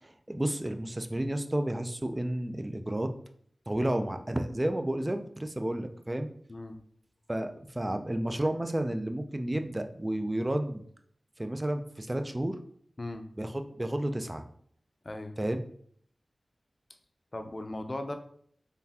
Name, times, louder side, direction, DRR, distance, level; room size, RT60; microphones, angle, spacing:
voice 1, 0.0-3.1 3.7-6.3 7.3-10.8 11.4-12.6 13.4-14.4 15.4-15.6, right 1 dB, 25° right, 7 dB, 0.4 m, -31 dB
voice 2, 6.5-6.8 13.0-13.3 15.0-15.4 17.3-18.2, left 1 dB, 45° left, 7 dB, 0.5 m, -38 dB
3.7 x 3.4 x 2.8 m, 0.62 s
cardioid pair, 40°, 0 cm